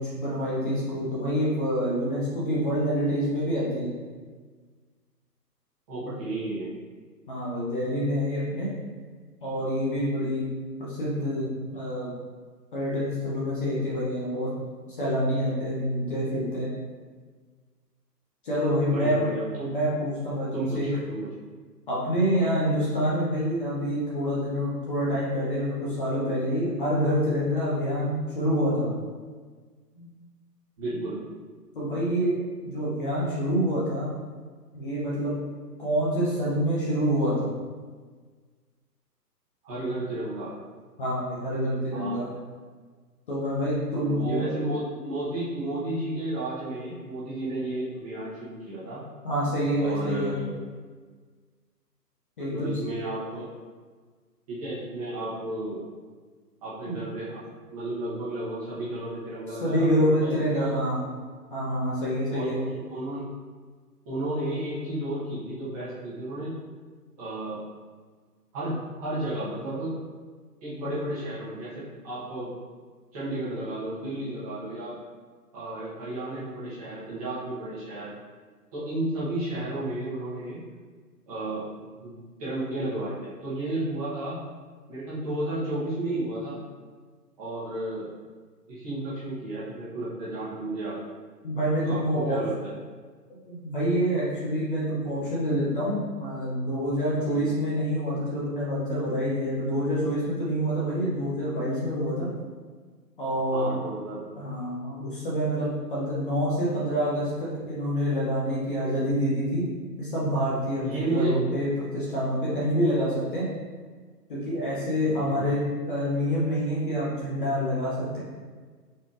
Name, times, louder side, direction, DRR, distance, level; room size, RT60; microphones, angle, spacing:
voice 1, 0.0-3.9 6.0-6.1 7.3-8.7 9.4-10.4 10.8-12.1 12.7-14.5 14.9-16.7 18.4-19.2 19.6-20.9 21.9-28.9 31.7-32.4 32.6-34.1 34.7-35.3 35.8-37.5 41.0-42.3 43.3-44.5 49.2-50.3 52.4-52.7 56.9-57.0 59.6-61.0 61.5-62.6 91.4-92.4 93.5-102.3 103.2-103.8 104.4-109.6 110.0-113.4 114.3-118.2, equal, 30° left, -7 dB, 0.8 m, -27 dB
voice 2, 5.9-6.7 18.8-19.7 20.5-21.3 29.9-30.1 30.8-31.2 39.6-40.6 41.9-42.2 43.9-49.0 49.8-50.5 52.4-53.5 54.5-55.8 56.6-57.4 57.7-60.8 62.3-63.3 64.0-66.6 67.2-67.6 68.5-70.0 70.6-72.5 73.1-75.0 75.5-78.1 78.7-80.6 81.3-81.7 82.0-84.4 84.9-86.6 87.4-88.1 88.7-91.1 91.8-92.7 97.3-97.5 103.5-104.4 110.8-111.4 115.0-115.5, right 1 dB, 20° right, -10 dB, 1.1 m, -33 dB
4.1 x 3.3 x 2.5 m, 1.5 s
figure-of-eight pair, 140°, 49 cm